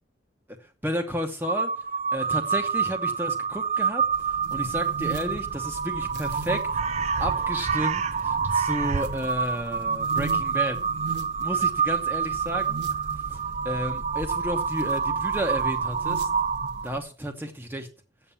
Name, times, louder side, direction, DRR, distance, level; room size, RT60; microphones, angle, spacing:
voice 1, 0.6-1.7 2.1-6.6 6.9-10.8 11.4-12.8 13.3-13.4 13.6-16.3 16.8-17.9, equal, 10° right, 0.9 m, -32 dB
Crow, 1.4-16.9, right 6 dB, 35° right, 0.4 m, -27 dB
sound 1, 4.1-17.0, right 2 dB, 65° right, 1.4 m, -41 dB
7.9 x 7.1 x 7.0 m
head